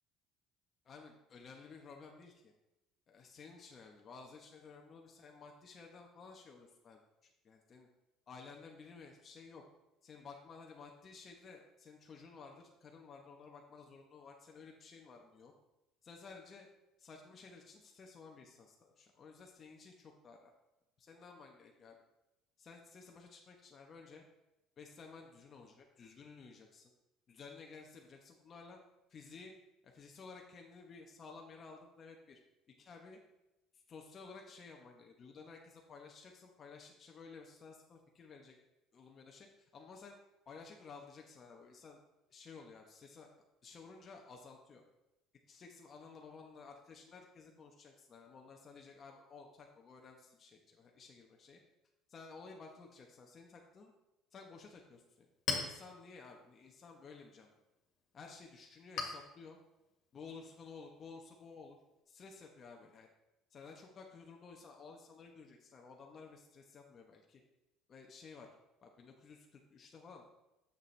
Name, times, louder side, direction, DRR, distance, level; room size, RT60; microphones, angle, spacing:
voice 1, 0.8-2.5 3.1-7.0 7.4-7.9 8.3-9.6 10.0-15.5 16.0-16.7 17.0-20.5 21.0-22.0 22.6-24.2 24.8-26.9 27.3-28.8 29.1-29.5 29.8-32.4 32.8-33.2 33.9-38.5 38.9-39.5 39.7-40.2 40.5-42.0 42.3-43.3 43.6-44.8 45.5-51.6 52.1-53.9 54.3-55.3 55.6-57.5 58.1-59.6 60.1-61.8 62.1-63.1 63.5-67.4 67.9-68.6 68.8-70.2, left 4 dB, 40° left, 1 dB, 1.0 m, -54 dB
Chink clink, 54.9-62.0, left 4 dB, 60° left, 1.9 m, -46 dB
7.0 x 6.5 x 3.3 m, 0.94 s
supercardioid pair, 90°, 0 cm